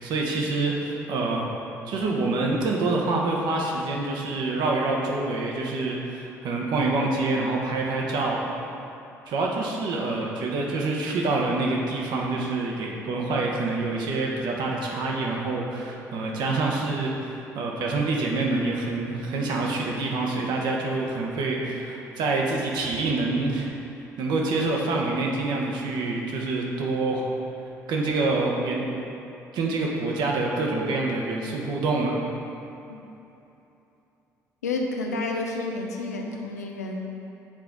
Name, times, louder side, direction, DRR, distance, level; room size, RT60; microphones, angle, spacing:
voice 1, 0.0-1.5 1.9-8.4 9.3-23.7 24.2-27.3 27.9-28.8 29.5-32.2, right 3 dB, 55° right, -1 dB, 1.0 m, -26 dB
voice 2, 34.6-37.0, left 3 dB, 85° left, 1 dB, 0.6 m, -30 dB
7.5 x 4.5 x 3.7 m, 2.9 s
figure-of-eight pair, 50°, 9 cm